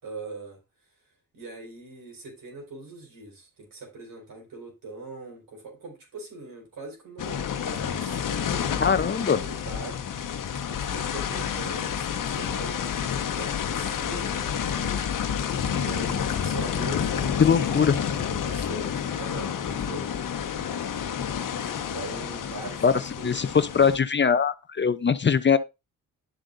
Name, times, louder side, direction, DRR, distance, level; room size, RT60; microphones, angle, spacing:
voice 1, 0.0-0.6 1.3-10.0 10.7-15.0 15.4-20.1 20.7-20.8 21.9-23.6, right 2 dB, 70° right, 4.6 m, -41 dB
sound 1, 7.2-24.0, left 8 dB, 65° left, 1.1 m, -29 dB
voice 2, 8.8-9.4 17.4-17.9 22.8-22.9 23.2-25.6, left 6 dB, 30° left, 0.7 m, -21 dB
10.5 x 7.5 x 2.6 m
supercardioid pair, 55°, 35 cm